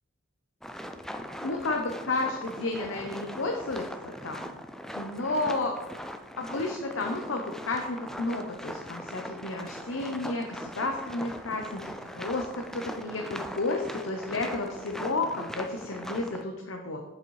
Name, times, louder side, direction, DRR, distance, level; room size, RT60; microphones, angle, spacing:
sound 1, 0.6-16.4, equal, ahead, 0.3 m, -40 dB
voice 1, 1.4-4.6 4.9-5.7 6.4-11.8 12.1-17.1, left 2 dB, 85° left, 3 dB, 0.8 m, -32 dB
7.9 x 7.1 x 3.2 m, 1.1 s
head